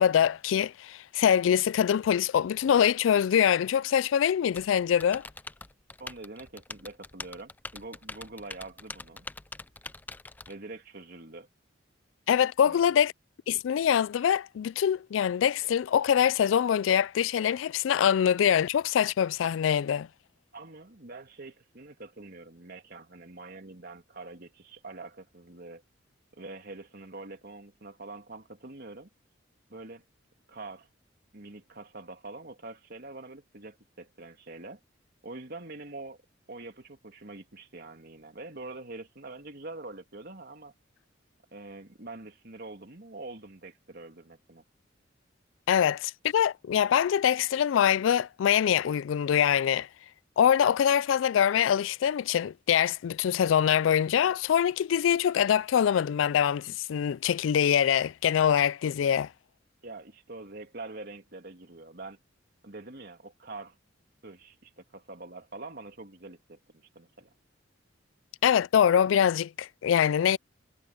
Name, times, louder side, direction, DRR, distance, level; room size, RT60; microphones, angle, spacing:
voice 1, 0.0-5.2 12.3-13.1 13.5-20.1 45.7-49.9 50.4-59.3 68.4-70.4, left 8 dB, 90° left, 0.3 m, -24 dB
Typing, 4.5-10.5, left 3 dB, 10° left, 0.3 m, -43 dB
voice 2, 6.0-9.3 10.5-11.5 12.6-12.8 20.5-25.8 26.4-29.1 29.7-30.0 30.5-30.9 31.3-34.8 35.2-36.2 36.5-40.7 41.5-44.6 59.8-62.2 62.6-63.8 64.2-67.3, right 2 dB, 55° right, 2.8 m, -45 dB
head